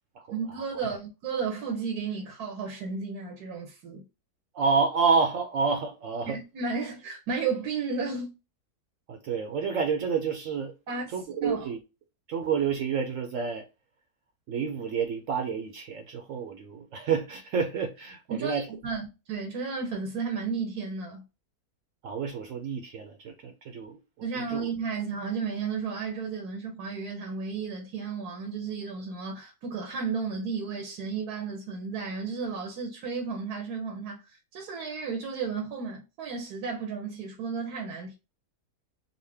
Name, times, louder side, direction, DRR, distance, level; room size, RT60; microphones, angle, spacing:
voice 1, 0.3-4.0 6.2-8.3 10.9-11.2 11.4-11.6 18.3-21.2 24.2-38.2, right 5 dB, 85° right, 1.4 m, -33 dB
voice 2, 4.5-6.4 9.1-10.7 11.1-11.8 12.3-13.6 14.5-18.7 22.0-24.7, right 5 dB, 65° right, 0.9 m, -29 dB
3.9 x 2.2 x 3.3 m
omnidirectional pair, 1.6 m